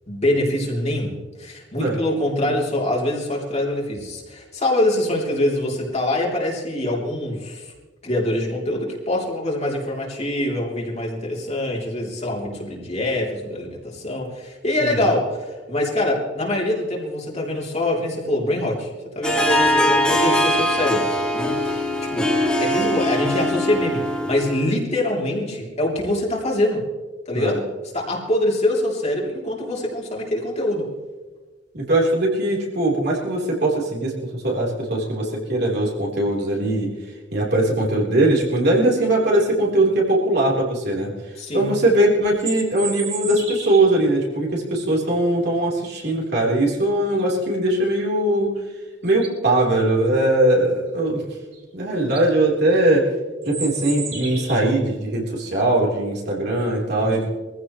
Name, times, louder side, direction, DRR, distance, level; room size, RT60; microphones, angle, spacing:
voice 1, 0.1-7.7 8.0-18.9 19.1-21.1 21.3-26.8 27.3-27.6 27.9-30.9 41.4-41.7 57.0-57.3, left 1 dB, 35° left, -3 dB, 3.4 m, -24 dB
Harp, 19.2-24.7, left 1 dB, 5° left, 2.3 m, -21 dB
voice 2, 31.7-36.9 37.3-41.1 41.5-48.5 49.0-51.2 51.7-53.1 53.4-57.3, right 1 dB, 60° right, -3 dB, 4.1 m, -20 dB
sound 1, 42.2-44.0 48.6-48.7 49.1-49.5 51.5-51.6 52.0-52.3 53.4-54.8, right 5 dB, 35° right, 3.5 m, -33 dB
23.5 x 15.5 x 3.3 m, 1.3 s
head